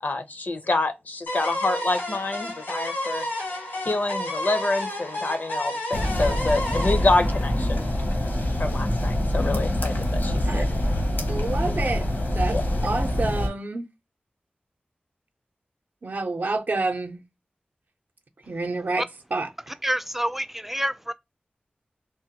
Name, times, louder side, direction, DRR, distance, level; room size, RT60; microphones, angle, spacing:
voice 1, 0.0-3.2 3.8-7.9 8.6-10.7 12.5-12.6, left 2 dB, 60° left, 0.6 m, -27 dB
sound 1, 1.3-8.2, left 1 dB, 90° left, 1.7 m, -31 dB
sound 2, 5.9-13.5, left 1 dB, 75° left, 0.9 m, -25 dB
voice 2, 10.5-10.8 11.3-13.9 16.0-17.2 18.5-19.1 19.3-19.7, right 3 dB, 60° right, 0.5 m, -29 dB
voice 3, 19.8-21.1, equal, 5° right, 0.3 m, -27 dB
3.4 x 2.2 x 2.7 m
wide cardioid pair, 55°, 3 cm